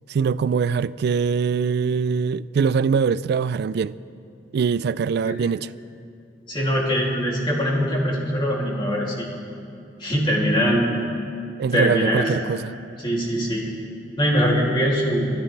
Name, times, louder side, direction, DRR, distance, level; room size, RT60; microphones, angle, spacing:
voice 1, 0.1-3.9 4.5-5.7 11.6-12.7, right 6 dB, 60° right, 0.3 m, -22 dB
voice 2, 6.5-9.3 10.0-11.0 11.7-12.3 13.0-13.7 14.2-15.3, equal, 25° left, 2.7 m, -22 dB
24.0 x 12.5 x 3.3 m
head